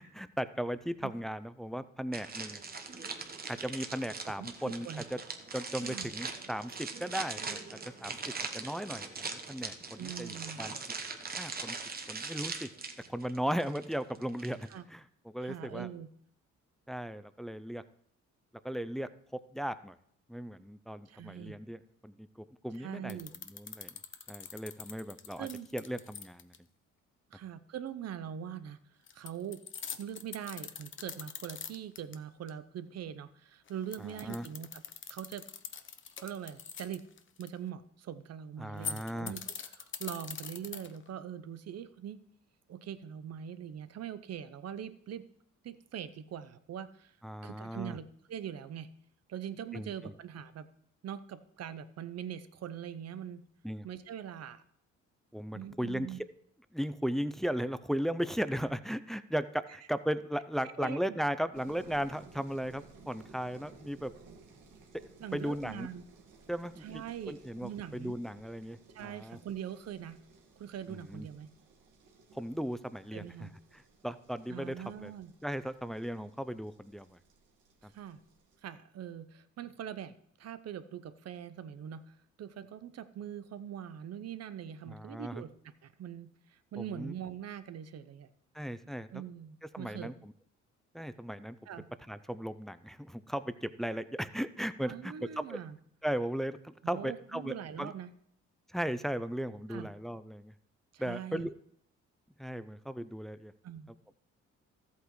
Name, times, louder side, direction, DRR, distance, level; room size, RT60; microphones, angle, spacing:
voice 1, 0.0-2.6 3.5-5.2 5.5-8.2 8.5-10.7 11.4-11.8 12.1-12.7 13.1-15.9 16.9-17.8 18.6-19.1 19.5-20.0 20.3-23.2 23.5-23.9 24.3-25.5 25.7-26.5 34.0-34.5 38.6-39.3 47.2-48.0 49.7-50.1 53.6-53.9 55.3-56.2 56.7-64.1 65.3-65.9 66.5-69.4 70.9-71.3 72.3-74.8 75.0-75.1 75.4-77.2 77.8-77.9 84.9-85.4 86.8-87.1 88.5-89.2 89.7-90.3 90.9-91.6 92.1-95.6 96.0-97.9 98.7-100.5 101.0-101.6 102.4-103.5, equal, ahead, 13 dB, 0.4 m, -37 dB
sound 1, 2.1-14.8, right 4 dB, 30° right, 1.1 m, -41 dB
voice 2, 4.4-5.0 5.8-6.1 10.0-10.6 14.7-14.8 15.4-16.1 21.1-21.6 22.8-23.3 25.4-25.7 27.3-28.8 29.1-29.6 30.0-34.8 35.1-35.4 36.2-37.0 37.4-42.2 42.7-45.2 45.6-47.1 47.4-48.9 49.3-50.7 51.0-53.4 53.8-54.6 55.5-56.2 60.8-61.2 65.2-66.0 66.8-68.2 68.9-70.2 70.6-71.5 73.1-73.5 74.5-75.3 77.9-78.2 78.6-80.1 80.4-82.0 82.4-85.5 85.8-88.3 89.1-90.1 91.7-91.9 94.9-95.8 96.8-98.1 99.7-99.9 100.9-101.5 103.6-103.9, right 9 dB, 55° right, 13 dB, 0.7 m, -42 dB
sound 2, 23.1-26.6 29.1-32.1 32.5-32.6 33.7-37.5 38.7-41.1, left 7 dB, 40° left, 0.7 m, -43 dB
sound 3, 61.5-78.6, right 4 dB, 85° right, 1.8 m, -58 dB
14.0 x 8.2 x 3.1 m, 0.65 s
cardioid pair, 90°, 30 cm